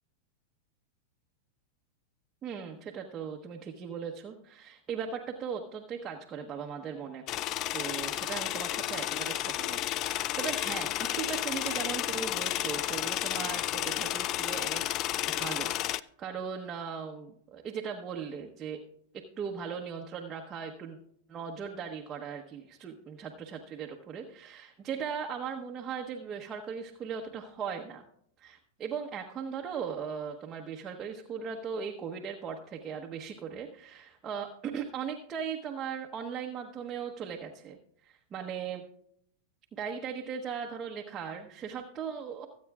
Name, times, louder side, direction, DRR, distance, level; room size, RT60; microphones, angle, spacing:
voice 1, 2.4-7.2 7.7-18.8 19.1-21.0 21.3-28.0 28.4-37.8 38.0-38.8 39.7-42.5, right 7 dB, 25° right, 1 dB, 1.0 m, -38 dB
sound 1, 7.3-16.0, left 14 dB, 40° left, 0.3 m, -32 dB
24.0 x 8.5 x 2.4 m, 0.70 s
hypercardioid pair, 115°, 0 cm